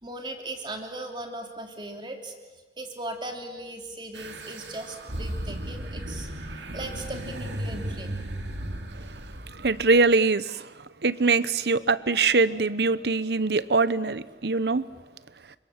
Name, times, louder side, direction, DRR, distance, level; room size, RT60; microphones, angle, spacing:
voice 1, 0.0-2.3 2.8-6.3 6.7-8.2, right 1 dB, 25° right, 3 dB, 3.1 m, -38 dB
sound 1, 4.1-10.1, right 1 dB, 90° right, 2.5 m, -35 dB
voice 2, 9.6-10.7 11.0-14.8, right 3 dB, 70° right, 15 dB, 0.9 m, -23 dB
30.0 x 25.5 x 7.5 m, 1.2 s
head